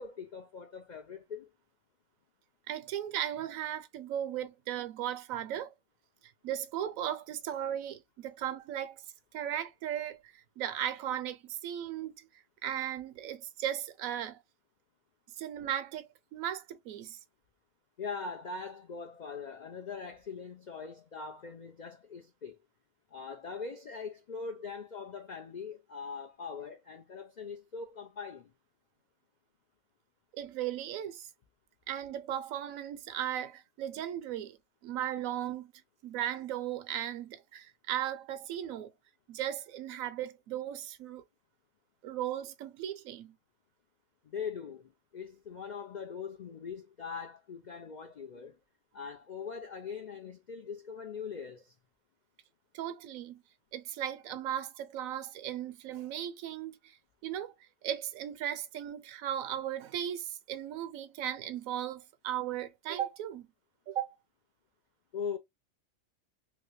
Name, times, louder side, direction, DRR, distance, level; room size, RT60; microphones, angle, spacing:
voice 1, 0.0-1.5 18.0-22.6 23.1-28.5 44.2-48.6 48.9-51.7 65.1-65.4, left 5 dB, 70° left, 0.4 m, -41 dB
voice 2, 2.7-5.7 6.4-9.0 9.3-12.3 12.6-14.4 15.4-17.2 30.3-31.3 31.9-34.6 34.8-35.7 36.0-38.9 39.3-41.2 42.0-43.3 52.7-53.4 53.7-63.5 63.9-64.2, right 11 dB, 80° right, 1.0 m, -37 dB
2.9 x 2.8 x 3.0 m
omnidirectional pair, 1.4 m